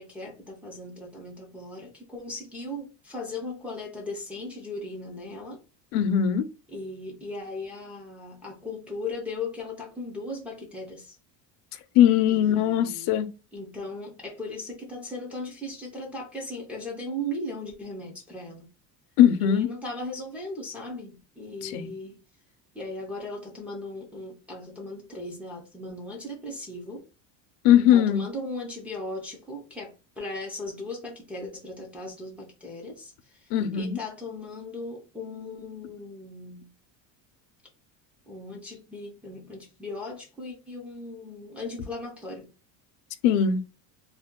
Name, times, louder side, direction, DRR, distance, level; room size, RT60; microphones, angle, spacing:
voice 1, 0.0-5.6 6.7-11.2 12.3-13.2 13.5-18.7 19.4-22.2 22.7-27.1 27.9-33.1 33.4-36.7 38.3-42.5, left 2 dB, 5° right, 0.4 m, -37 dB
voice 2, 5.9-6.4 12.0-13.3 19.2-19.7 21.6-21.9 27.6-28.2 33.5-34.0 43.2-43.6, left 10 dB, 75° left, 0.6 m, -20 dB
2.6 x 2.3 x 3.6 m
cardioid pair, 165°, 42 cm